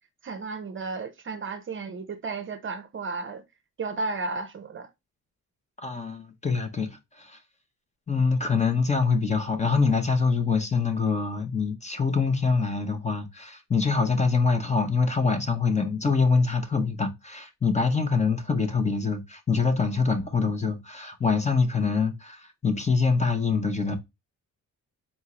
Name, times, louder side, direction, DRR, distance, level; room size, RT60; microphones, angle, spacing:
voice 1, 0.2-3.4 3.8-4.9, right 3 dB, 40° right, 0.6 m, -33 dB
voice 2, 5.8-7.4 8.1-24.0, left 4 dB, 20° left, 0.7 m, -25 dB
4.1 x 3.5 x 2.8 m
wide cardioid pair, 155°, 33 cm